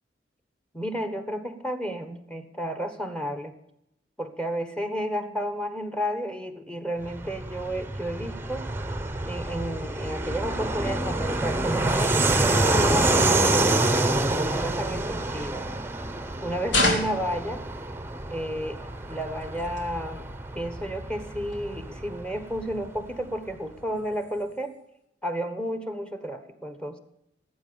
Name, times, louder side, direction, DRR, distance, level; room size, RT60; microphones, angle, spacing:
voice 1, 0.7-3.5 4.2-8.7 9.3-15.7 16.4-17.6 18.3-18.8 19.1-20.3 20.5-24.8 25.2-27.0, equal, 5° left, 9 dB, 1.3 m, -32 dB
Fixed-wing aircraft airplane, 7.0-23.2, right 2 dB, 10° right, 0.9 m, -27 dB
sound 1, 14.6-16.2 16.6-18.2 18.7-20.0 20.4-20.8 21.1-21.2 21.5-21.9 22.4-22.5 22.9-23.4 23.7-24.8, left 2 dB, 90° left, 3.2 m, -32 dB
18.0 x 8.6 x 6.9 m, 0.80 s
head